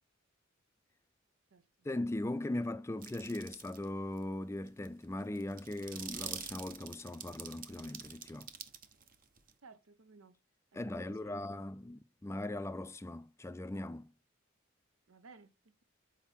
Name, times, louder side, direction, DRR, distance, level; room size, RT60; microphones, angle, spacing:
voice 1, 1.8-8.5 10.7-14.1, left 1 dB, 15° left, 0.3 m, -39 dB
sound 1, 3.0-3.8 4.2-4.3 4.7-9.5, right 8 dB, 40° right, 0.8 m, -46 dB
voice 2, 9.6-10.4 10.8-11.4 15.1-15.7, right 4 dB, 80° right, 0.8 m, -57 dB
7.3 x 4.5 x 4.3 m
head